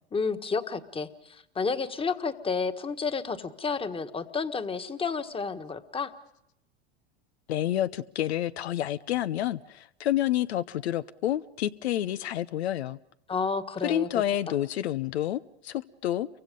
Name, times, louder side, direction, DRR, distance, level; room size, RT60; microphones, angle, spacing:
voice 1, 0.1-6.1 13.3-14.1, left 5 dB, 15° left, 8 dB, 1.6 m, -31 dB
voice 2, 7.5-13.0 13.8-16.3, left 12 dB, 80° left, 14 dB, 0.8 m, -29 dB
29.5 x 24.0 x 5.3 m, 0.80 s
hypercardioid pair, 100°, 32 cm